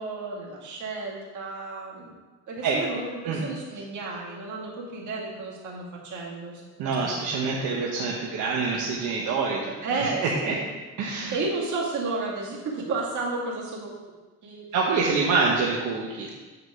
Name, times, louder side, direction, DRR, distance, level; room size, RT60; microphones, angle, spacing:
voice 1, 0.0-2.1 2.5-6.6 7.0-7.2 9.8-10.6 11.3-13.9 14.4-14.7, right 3 dB, 75° right, -3 dB, 2.1 m, -32 dB
voice 2, 2.6-3.4 6.8-10.6 11.0-11.4 14.7-16.3, right 4 dB, 90° right, -4 dB, 1.1 m, -26 dB
8.0 x 4.9 x 4.8 m, 1.3 s
cardioid pair, 90°, 30 cm